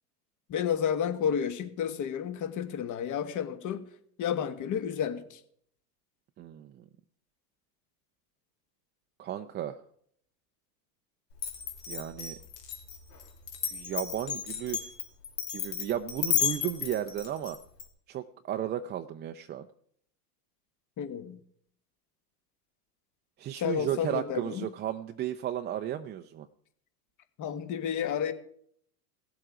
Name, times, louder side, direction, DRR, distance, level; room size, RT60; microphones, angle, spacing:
voice 1, 0.5-3.8 4.2-5.4 21.0-21.4 23.5-24.7 27.4-28.3, left 8 dB, 40° left, 1.4 m, -31 dB
voice 2, 6.4-6.8 9.2-9.8 11.9-12.4 13.7-14.9 15.5-17.6 18.1-19.7 23.4-26.5, right 11 dB, 25° right, 0.4 m, -34 dB
Glass, 11.4-17.8, left 9 dB, 80° left, 2.6 m, -33 dB
17.0 x 7.7 x 4.9 m
hypercardioid pair, 100°, 48 cm